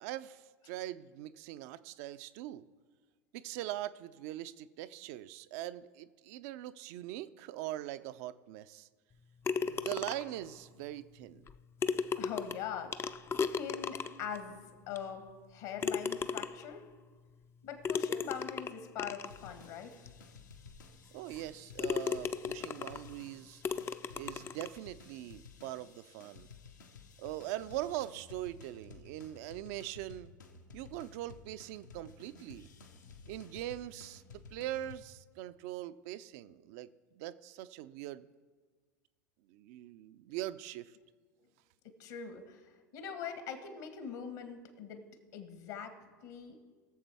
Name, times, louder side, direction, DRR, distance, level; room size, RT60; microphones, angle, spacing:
voice 1, 0.0-2.7 3.3-8.9 9.6-11.5 21.1-23.6 24.1-26.5 27.2-30.3 30.7-32.7 33.3-38.3 39.5-41.0, right 14 dB, 55° right, 14 dB, 0.5 m, -42 dB
sound 1, 9.4-10.4 11.5-11.6 11.8-14.4 15.0-15.1 15.8-16.8 17.8-19.4 20.1-20.2 20.7-20.8 21.3-21.5 21.8-23.1 23.6-24.8, left 5 dB, 25° left, 0.5 m, -35 dB
voice 2, 12.2-13.2 13.5-16.8 17.6-20.0 41.8-45.0 45.3-46.0 46.2-46.6, left 7 dB, 60° left, 7 dB, 1.5 m, -43 dB
sound 2, 19.2-35.0, left 4 dB, 75° left, 1.1 m, -55 dB
21.0 x 7.2 x 3.5 m, 1.4 s
figure-of-eight pair, 80°, 10 cm